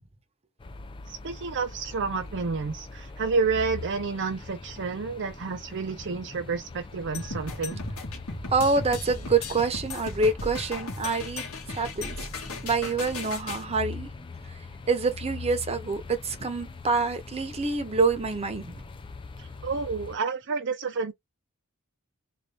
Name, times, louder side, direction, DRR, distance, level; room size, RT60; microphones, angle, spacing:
sound 1, 0.6-20.2, left 3 dB, 25° left, 0.5 m, -42 dB
voice 1, 1.1-7.8 19.4-21.1, right 4 dB, 55° right, 0.6 m, -30 dB
sound 2, 7.1-13.6, left 3 dB, 70° left, 1.7 m, -36 dB
voice 2, 8.5-12.2 12.6-14.1 14.9-18.8, right 3 dB, 30° right, 0.8 m, -26 dB
4.0 x 2.5 x 3.3 m
head